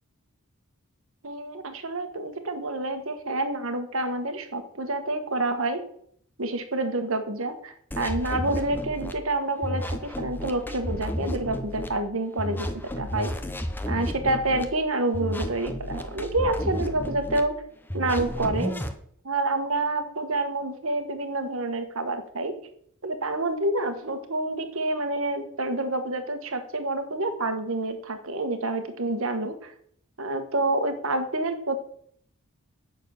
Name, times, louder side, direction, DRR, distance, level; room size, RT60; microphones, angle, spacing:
voice 1, 1.2-5.8 6.4-12.7 13.0-13.3 13.9-17.5 17.9-18.7 19.2-22.5 23.0-29.7 30.2-31.8, right 2 dB, 70° right, 8 dB, 1.5 m, -28 dB
sound 1, 7.9-9.1 9.6-11.9 12.4-14.6 15.1-17.4 17.9-18.9, equal, 10° left, 0.8 m, -32 dB
8.9 x 6.6 x 7.0 m, 0.65 s
head